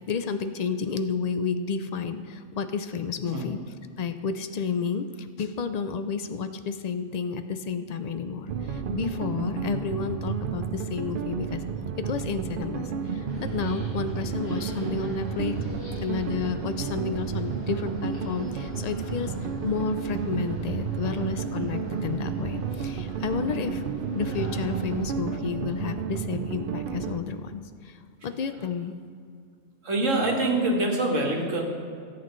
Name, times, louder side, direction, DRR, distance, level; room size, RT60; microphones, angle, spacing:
voice 1, 0.1-3.6 4.0-11.6 12.0-15.6 16.0-19.3 19.6-23.8 24.1-28.0 28.2-29.0, left 5 dB, 60° left, 9 dB, 0.4 m, -31 dB
sound 1, 8.5-27.2, right 7 dB, 55° right, 0.6 m, -32 dB
sound 2, 13.3-25.1, equal, 90° left, 2.9 m, -42 dB
voice 2, 29.8-31.6, right 2 dB, 90° right, 0 dB, 2.0 m, -25 dB
18.0 x 8.5 x 3.1 m, 2.2 s
omnidirectional pair, 1.3 m